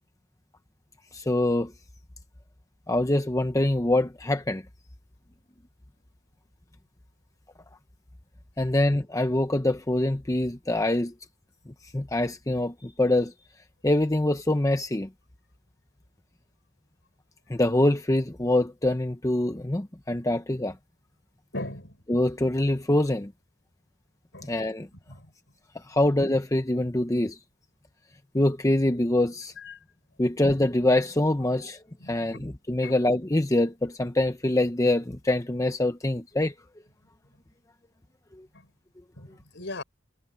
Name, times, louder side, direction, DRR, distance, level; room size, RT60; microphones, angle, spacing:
voice 1, 1.1-1.7 2.9-4.6 8.6-11.1 11.9-13.3 13.8-15.1 17.5-20.8 22.1-23.3 24.4-24.9 25.7-27.4 28.3-29.5 30.2-31.8 32.1-36.5, left 1 dB, 15° left, 0.8 m, -24 dB
voice 2, 21.5-22.0 24.3-24.5 25.1-25.3 29.6-29.8 32.0-32.4 32.8-33.0 38.5-38.7 39.2-39.8, left 2 dB, 65° left, 6.2 m, -39 dB
head